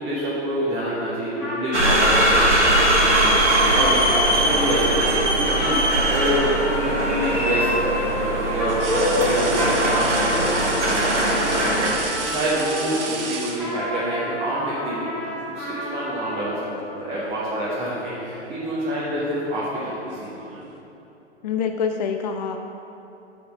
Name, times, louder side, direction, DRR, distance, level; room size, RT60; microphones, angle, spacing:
voice 1, 0.0-5.8 6.1-20.4, equal, 15° right, -8 dB, 1.3 m, -27 dB
Trumpet, 1.4-13.1 13.6-16.6, equal, ahead, 1.7 m, -31 dB
sound 1, 1.7-11.9, right 1 dB, 85° right, 1.4 m, -20 dB
sound 2, 8.7-14.1 15.3-15.5 15.9-16.7 17.0-17.3 18.2-20.8, right 4 dB, 55° right, 1.0 m, -34 dB
voice 2, 21.4-22.6, left 6 dB, 40° left, 5 dB, 0.4 m, -25 dB
6.4 x 5.6 x 6.5 m, 2.9 s
figure-of-eight pair, 115°, 35 cm